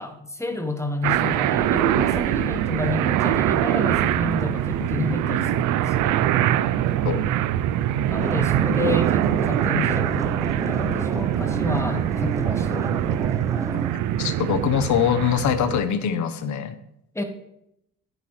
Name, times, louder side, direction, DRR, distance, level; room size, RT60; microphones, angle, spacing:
voice 1, 0.0-6.2 8.1-12.8 17.1-17.2, left 3 dB, 10° left, 6 dB, 1.2 m, -30 dB
sound 1, 1.0-15.9, right 11 dB, 90° right, 0.5 m, -23 dB
sound 2, 8.2-14.0, right 2 dB, 10° right, 0.5 m, -31 dB
voice 2, 14.2-16.8, left 8 dB, 70° left, 11 dB, 0.9 m, -23 dB
9.7 x 8.2 x 3.2 m, 0.80 s
cardioid pair, 90°, 30 cm